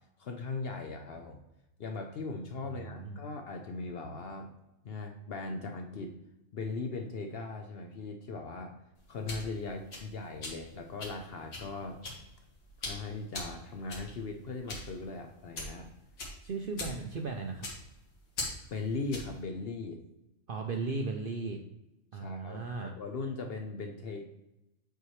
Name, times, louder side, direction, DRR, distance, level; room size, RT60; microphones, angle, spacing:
voice 1, 0.2-1.4 1.8-4.5 4.8-6.2 6.5-8.8 9.1-12.0 12.8-15.9 18.7-20.0 22.1-24.2, left 3 dB, 60° left, 4 dB, 0.7 m, -39 dB
voice 2, 2.7-3.2 16.4-17.7 20.5-21.6 22.1-22.9, right 4 dB, 60° right, 3 dB, 0.6 m, -36 dB
sound 1, 9.0-19.4, left 2 dB, 80° left, 2.0 m, -43 dB
6.9 x 4.5 x 3.1 m, 0.92 s
omnidirectional pair, 1.4 m